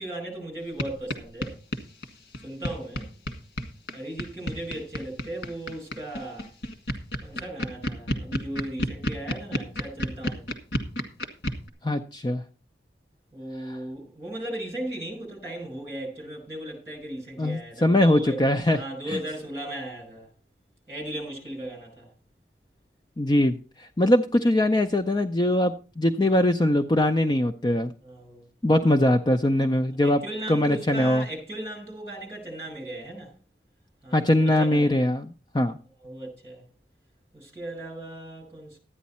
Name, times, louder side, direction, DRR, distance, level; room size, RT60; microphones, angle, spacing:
voice 1, 0.0-1.6 2.4-3.1 3.9-6.5 7.2-10.5 13.3-18.4 18.7-20.3 20.9-22.1 28.0-28.4 30.0-33.3 34.0-35.0 36.0-36.6 37.3-38.8, right 1 dB, 15° right, 5.4 m, -37 dB
sound 1, 0.8-0.9 1.1-1.2 1.4-11.7, left 1 dB, 90° left, 1.8 m, -30 dB
voice 2, 11.8-12.4 13.6-13.8 17.4-18.8 19.1-19.2 23.2-27.9 28.6-30.2 30.5-31.3 34.1-35.8, left 1 dB, 25° left, 0.5 m, -22 dB
12.5 x 9.4 x 4.2 m
head